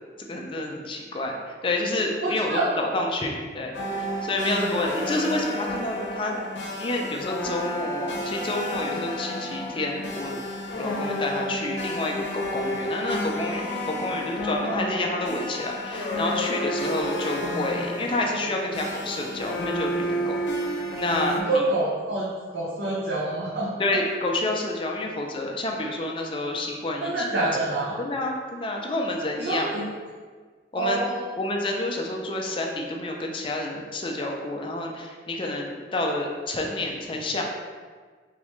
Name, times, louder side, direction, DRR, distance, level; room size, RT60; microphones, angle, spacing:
voice 1, 0.2-3.7 4.2-6.4 6.8-10.4 10.7-20.4 21.0-21.7 23.8-29.7 30.7-31.1 31.3-37.4, left 2 dB, 30° left, 1 dB, 0.5 m, -29 dB
voice 2, 2.2-2.7 4.5-4.7 14.6-14.9 21.4-23.7 27.0-28.0 29.4-29.8 30.8-31.3, right 2 dB, 70° right, -6 dB, 0.7 m, -27 dB
sound 1, 3.7-21.4, left 1 dB, 80° left, 0.7 m, -31 dB
4.0 x 3.5 x 3.1 m, 1.5 s
head